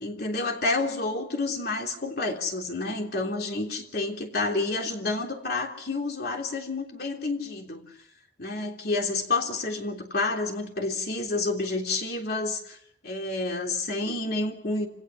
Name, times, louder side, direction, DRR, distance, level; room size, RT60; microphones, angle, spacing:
voice 1, 0.0-7.8 8.4-12.8 13.0-14.9, left 3 dB, 55° left, 2 dB, 3.4 m, -29 dB
27.0 x 18.0 x 6.4 m, 0.71 s
head